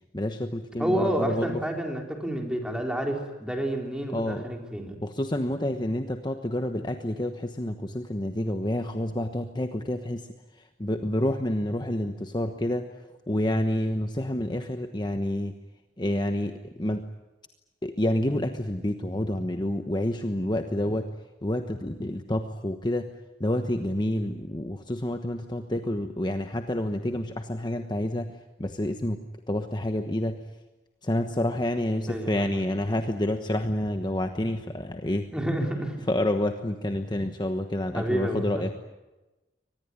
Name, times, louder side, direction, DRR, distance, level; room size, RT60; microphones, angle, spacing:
voice 1, 0.1-1.6 4.1-4.4 5.0-10.3 10.8-12.9 13.3-15.5 16.0-17.1 17.8-21.1 21.4-23.1 23.4-28.3 28.6-29.2 29.5-30.4 31.0-35.3 36.1-38.7, left 1 dB, 25° left, 6 dB, 1.2 m, -28 dB
voice 2, 0.8-5.0 32.1-32.6 35.3-36.1 37.9-38.7, right 1 dB, 5° right, 2 dB, 4.1 m, -29 dB
24.0 x 19.5 x 9.9 m, 1.1 s
head